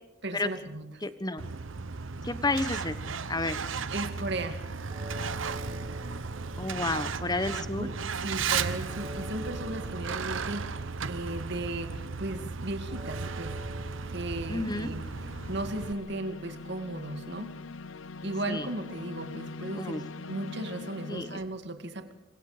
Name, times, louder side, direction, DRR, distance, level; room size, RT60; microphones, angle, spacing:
voice 1, 0.2-0.9 3.9-4.7 7.8-7.9 8.2-15.1 15.5-17.6 18.2-22.1, right 2 dB, 55° right, 8 dB, 2.3 m, -36 dB
voice 2, 1.0-1.5 2.2-3.0 3.3-3.6 6.6-7.9 14.5-14.9 18.5-18.7 19.7-20.0 21.1-21.4, left 2 dB, 20° left, 12 dB, 1.3 m, -31 dB
Truck, 1.4-15.9, right 5 dB, 75° right, 1.0 m, -35 dB
sound 1, 4.9-19.1, equal, 30° right, 5.7 m, -49 dB
sound 2, 7.3-7.7 13.6-21.4, left 3 dB, 75° left, 0.8 m, -44 dB
28.5 x 24.5 x 5.1 m, 1.0 s
head